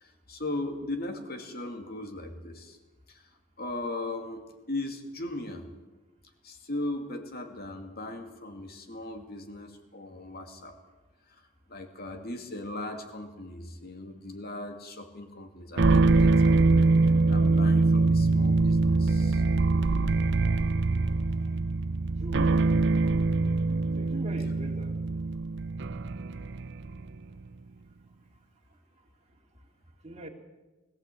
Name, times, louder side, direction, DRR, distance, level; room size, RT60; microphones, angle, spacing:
voice 1, 0.0-2.8 3.1-3.2 3.6-4.4 4.7-5.7 6.4-10.8 11.7-16.5 17.3-19.4, left 2 dB, 45° left, 5 dB, 2.5 m, -38 dB
sound 1, 15.8-27.2, right 3 dB, 55° right, 0.6 m, -24 dB
voice 2, 21.2-21.5 22.2-22.8 23.9-25.0 30.0-30.3, right 1 dB, 30° right, 1 dB, 2.6 m, -42 dB
21.0 x 14.5 x 8.5 m, 1.2 s
head